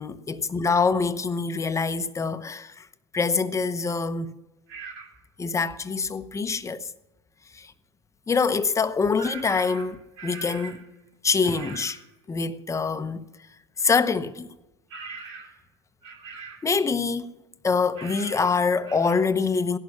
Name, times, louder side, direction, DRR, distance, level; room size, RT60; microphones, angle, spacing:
voice 1, 0.0-2.9 3.1-4.3 5.4-6.9 7.5-7.7 8.3-10.8 11.2-12.0 12.3-13.2 13.8-14.5 16.6-17.3 17.6-19.8, left 4 dB, 20° left, 1.0 m, -25 dB
sound 1, 4.7-5.1 9.2-10.9 11.4-12.0 14.9-15.6 16.0-16.7 18.0-18.6 18.9-19.1, right 5 dB, 75° right, 3.2 m, -41 dB
17.0 x 11.5 x 6.1 m
hypercardioid pair, 85°, 15 cm